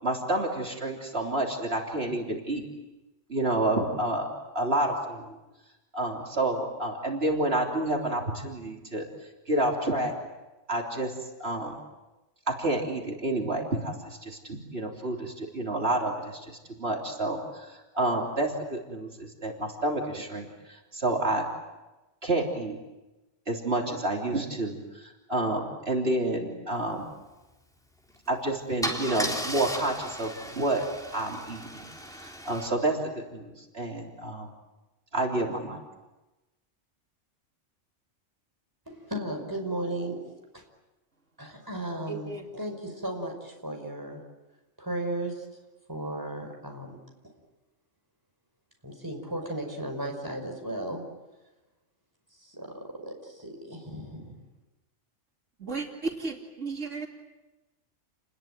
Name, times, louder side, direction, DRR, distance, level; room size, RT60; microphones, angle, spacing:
voice 1, 0.0-2.7 3.3-5.4 5.9-9.1 9.5-10.1 10.7-11.1 11.4-11.8 12.5-21.4 22.2-22.8 23.5-27.0 28.3-30.9 31.1-31.9 32.2-34.5 35.1-35.8, right 1 dB, 55° right, 0 dB, 3.7 m, -29 dB
Car / Engine starting / Idling, 28.1-28.3 28.8-32.7, equal, 5° left, 3.6 m, -36 dB
voice 2, 38.9-40.2 40.5-40.6 41.4-44.2 44.8-45.4 45.9-47.0 48.8-51.0 52.4-52.7 53.0-54.3, right 1 dB, 15° right, 2 dB, 5.4 m, -35 dB
voice 3, 42.1-42.4 55.6-57.1, right 4 dB, 80° right, 1 dB, 3.0 m, -34 dB
30.0 x 20.5 x 9.1 m, 1.1 s
omnidirectional pair, 1.3 m